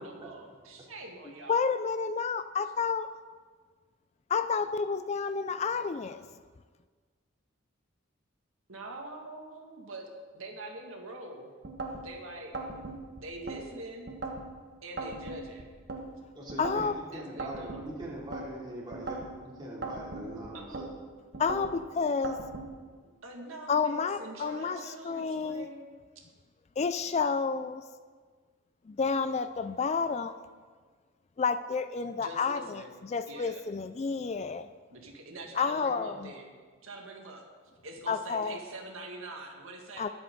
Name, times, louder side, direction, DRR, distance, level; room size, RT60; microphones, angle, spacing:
voice 1, 0.0-1.7 8.7-10.1 10.3-11.5 12.0-12.5 13.2-14.1 14.8-15.7 17.1-17.8 20.5-20.8 23.2-26.0 28.1-28.2 32.2-32.9 33.3-33.6 34.9-36.5 36.8-37.4 37.8-40.1, right 2 dB, 85° right, 1 dB, 2.0 m, -44 dB
voice 2, 1.5-3.1 4.3-6.3 16.6-16.9 21.4-22.4 23.7-25.7 26.8-27.8 28.9-30.3 31.4-34.7 35.6-36.3 38.1-38.6 40.0-40.1, left 5 dB, 30° left, 11 dB, 0.3 m, -30 dB
sound 1, 11.6-12.1 12.5-13.6 14.1-14.5 15.0-16.0 16.5-16.9 17.4-18.5 18.9-19.3 19.8-20.9 21.3-21.8 22.2-22.7, right 3 dB, 50° right, 1.5 m, -38 dB
voice 3, 16.3-20.9, right 1 dB, 20° right, -5 dB, 3.0 m, -42 dB
21.5 x 7.9 x 3.8 m, 1.6 s
head